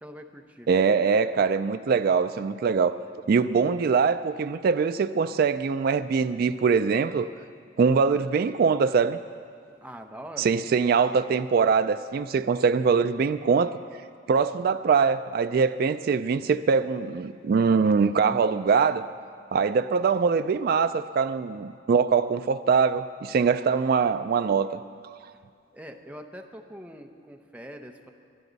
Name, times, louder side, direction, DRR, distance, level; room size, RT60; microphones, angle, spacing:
voice 1, 0.0-0.7 9.7-10.5 25.7-28.1, equal, 10° right, 3 dB, 0.8 m, -43 dB
voice 2, 0.7-3.0 3.3-7.3 7.8-9.2 10.4-13.8 14.3-19.0 19.5-24.8, right 5 dB, 50° right, 10 dB, 0.3 m, -23 dB
22.5 x 11.5 x 4.0 m, 2.3 s
head